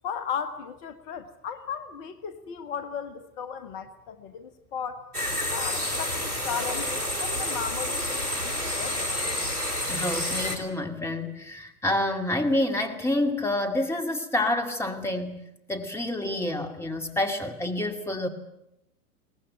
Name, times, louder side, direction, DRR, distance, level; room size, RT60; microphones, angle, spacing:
voice 1, 0.0-5.0 5.5-9.1, left 7 dB, 40° left, 11 dB, 1.6 m, -36 dB
sound 1, 5.1-10.6, left 1 dB, 85° right, 4.0 m, -29 dB
voice 2, 9.9-18.3, left 1 dB, 5° left, 5 dB, 2.4 m, -28 dB
23.0 x 19.0 x 9.0 m, 0.85 s
figure-of-eight pair, 95°, 44 cm